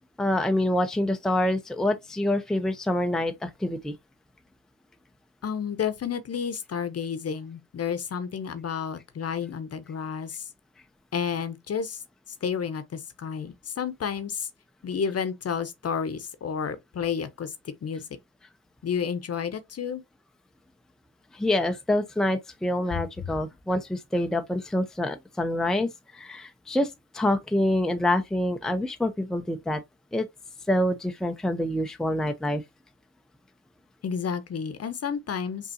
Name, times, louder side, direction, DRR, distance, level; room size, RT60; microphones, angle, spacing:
voice 1, 0.2-3.9 21.3-29.8 30.1-30.3 30.7-32.6, left 1 dB, ahead, 0.6 m, -26 dB
voice 2, 5.4-10.4 11.1-12.0 12.4-14.5 14.8-17.5 17.8-18.0 18.8-20.0 34.0-35.7, left 7 dB, 45° left, 0.9 m, -31 dB
5.3 x 2.7 x 2.7 m
supercardioid pair, 55°, 33 cm